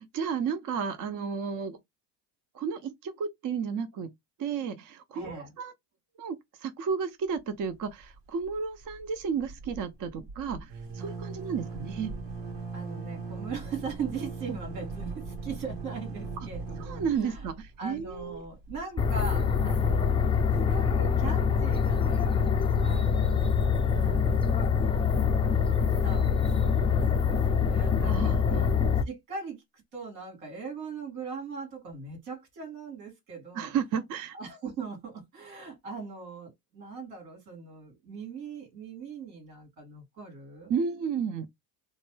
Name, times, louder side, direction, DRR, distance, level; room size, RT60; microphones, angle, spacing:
voice 1, 0.0-1.8 2.5-4.1 4.4-5.7 6.2-12.2 16.8-18.4 28.0-28.7 33.6-34.4 40.7-41.5, right 6 dB, 40° right, 0.6 m, -32 dB
voice 2, 5.1-5.5 12.7-17.5 17.8-23.5 24.0-24.9 25.5-26.4 26.7-28.7 29.1-33.7 34.3-40.7, right 5 dB, 80° right, 2.6 m, -40 dB
sound 1, 7.6-8.2 8.4-8.6 8.8-19.5, right 4 dB, 65° right, 2.2 m, -40 dB
sound 2, 19.0-29.0, left 6 dB, 10° left, 0.4 m, -25 dB
3.8 x 2.2 x 3.2 m
supercardioid pair, 90°, 48 cm